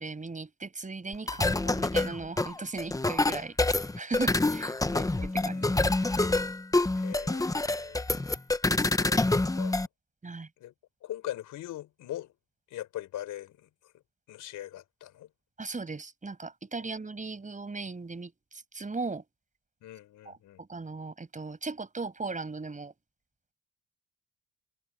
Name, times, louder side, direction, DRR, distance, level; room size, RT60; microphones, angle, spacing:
voice 1, 0.0-6.3 10.2-10.5 15.6-19.2 20.3-22.9, right 3 dB, 25° right, 6.4 m, -38 dB
sound 1, 1.1-9.9, left 2 dB, 10° left, 1.0 m, -27 dB
voice 2, 4.8-5.7 6.9-8.0 8.8-9.9 10.6-10.7 11.0-12.3 12.7-13.9 14.3-15.3 16.8-16.9 19.8-20.6, left 13 dB, 80° left, 5.1 m, -42 dB
cardioid pair, 90°, 30 cm